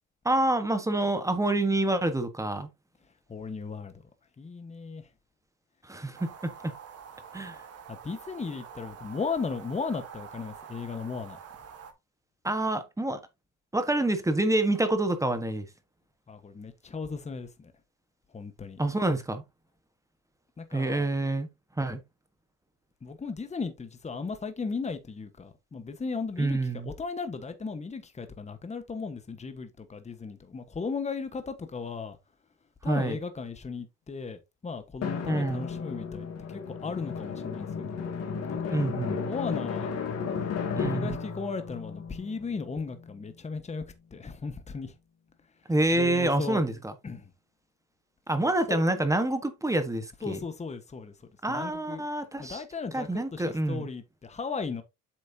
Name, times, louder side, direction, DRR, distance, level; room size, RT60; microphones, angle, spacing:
voice 1, 0.2-2.7 5.8-6.7 7.3-7.6 12.4-13.2 13.7-15.7 18.8-19.4 20.7-21.5 21.8-22.0 26.4-26.9 32.8-33.2 35.3-35.7 38.7-39.2 40.7-41.2 45.7-46.9 48.3-50.4 51.4-52.6 52.9-53.9, right 2 dB, 10° right, 1.5 m, -27 dB
voice 2, 3.3-3.9 4.4-5.1 7.9-11.4 16.3-17.7 18.3-18.8 20.6-21.1 23.0-26.6 26.8-32.2 32.8-38.1 38.5-38.8 39.2-40.0 40.8-43.8 44.1-44.9 45.9-46.6 47.0-47.3 48.4-48.8 50.2-51.1 51.5-52.0 52.4-54.8, left 4 dB, 20° left, 1.4 m, -36 dB
sound 1, 6.1-11.9, right 7 dB, 45° right, 2.2 m, -46 dB
Drum, 35.0-43.3, left 6 dB, 45° left, 2.5 m, -34 dB
8.3 x 6.3 x 2.9 m
supercardioid pair, 100°, 34 cm